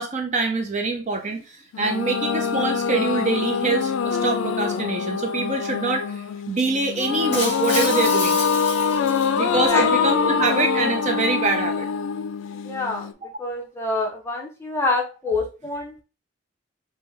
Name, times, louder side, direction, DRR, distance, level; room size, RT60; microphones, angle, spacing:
voice 1, 0.0-8.4 9.3-11.9, right 3 dB, 35° right, 4 dB, 0.5 m, -25 dB
sound 1, 1.7-13.1, left 6 dB, 90° left, 0.3 m, -24 dB
Shatter, 7.3-9.7, left 2 dB, 30° left, 1.6 m, -30 dB
voice 2, 9.4-9.9 12.5-16.0, left 3 dB, 15° left, -1 dB, 0.8 m, -27 dB
5.1 x 2.2 x 3.2 m, 0.33 s
head